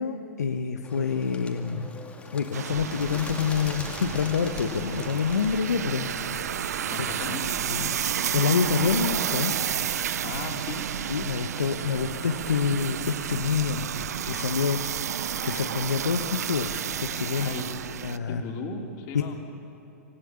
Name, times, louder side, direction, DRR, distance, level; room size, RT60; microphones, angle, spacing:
voice 1, 0.0-1.9 2.3-6.1 7.7-7.9 8.3-9.5 11.1-13.9 14.3-14.8 15.1-17.5 18.0-18.4 19.1-19.3, left 6 dB, 85° left, 6 dB, 1.2 m, -27 dB
Bird, 0.8-6.2, left 3 dB, 15° left, 2.5 m, -42 dB
sound 1, 2.5-18.2, right 9 dB, 75° right, 0.7 m, -31 dB
sound 2, 2.7-18.1, right 5 dB, 40° right, 3.3 m, -43 dB
voice 2, 6.8-7.4 10.2-10.9 17.4-17.7 18.3-19.3, left 3 dB, 45° left, 1 dB, 3.7 m, -36 dB
26.0 x 16.0 x 9.7 m, 2.8 s
hypercardioid pair, 115°, 9 cm